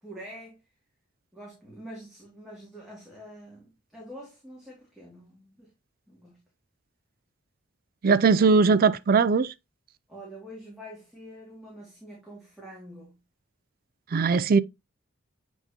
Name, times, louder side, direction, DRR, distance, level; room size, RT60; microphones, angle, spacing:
voice 1, 0.0-0.6 1.3-5.7 6.1-6.4 10.1-13.2, equal, ahead, 2.3 m, -45 dB
voice 2, 8.0-9.5 14.1-14.6, right 5 dB, 45° right, 0.4 m, -20 dB
8.1 x 4.5 x 2.8 m
head